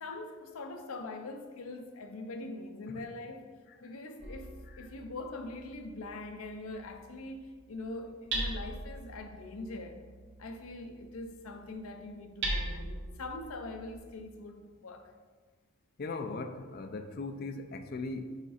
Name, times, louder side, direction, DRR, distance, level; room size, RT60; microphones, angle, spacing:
voice 1, 0.0-3.5 3.8-10.0 10.4-15.1, left 2 dB, 85° left, 0.6 m, -43 dB
Hammer, 4.2-14.0, right 1 dB, 55° right, 1.1 m, -41 dB
voice 2, 16.0-18.4, left 3 dB, 45° left, 0.4 m, -39 dB
5.0 x 4.9 x 4.1 m
head